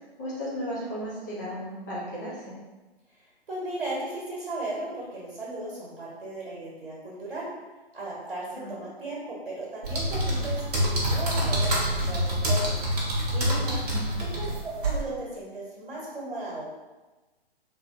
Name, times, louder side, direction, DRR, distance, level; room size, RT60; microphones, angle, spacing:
voice 1, 0.2-2.5 8.6-8.7 13.8-14.2, equal, 20° left, -7 dB, 0.4 m, -35 dB
voice 2, 3.2-7.5 7.9-12.7 13.3-13.8 14.2-16.6, right 2 dB, 65° right, -5 dB, 1.1 m, -36 dB
sound 1, 9.8-15.0, equal, 40° right, 0.7 m, -26 dB
2.8 x 2.6 x 2.4 m, 1.2 s
figure-of-eight pair, 125°, 31 cm